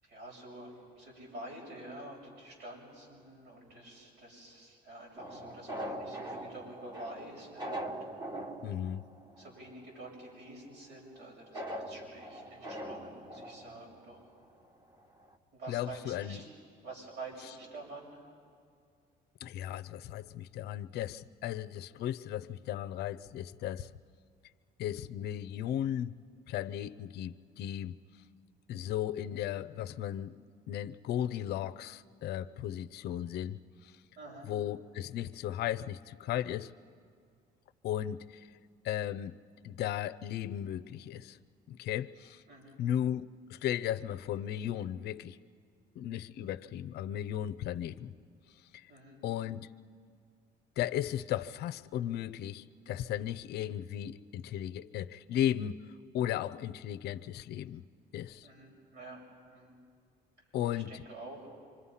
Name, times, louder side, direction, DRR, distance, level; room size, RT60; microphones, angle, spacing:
voice 1, 0.0-8.0 9.4-14.2 15.5-16.5 16.8-18.2 34.2-34.5 42.5-42.8 48.9-49.2 58.4-59.2 59.5-59.8 60.9-61.5, right 2 dB, 80° right, 7.4 m, -48 dB
sound 1, 5.2-9.8 10.2-10.3 11.5-14.5 14.9-15.0 15.2-15.3, right 1 dB, 25° right, 1.6 m, -42 dB
voice 2, 8.6-9.1 15.7-16.4 19.4-23.9 24.8-26.2 26.5-28.0 28.7-30.4 30.7-33.9 34.5-36.7 37.8-38.5 38.8-39.4 39.6-41.4 41.7-42.4 42.8-45.4 46.0-48.1 48.7-48.8 49.2-49.7 50.8-55.8 56.1-57.8 58.1-58.5 60.5-61.0, left 11 dB, 75° left, 0.6 m, -35 dB
26.5 x 25.0 x 5.7 m
cardioid pair, 110°, 17 cm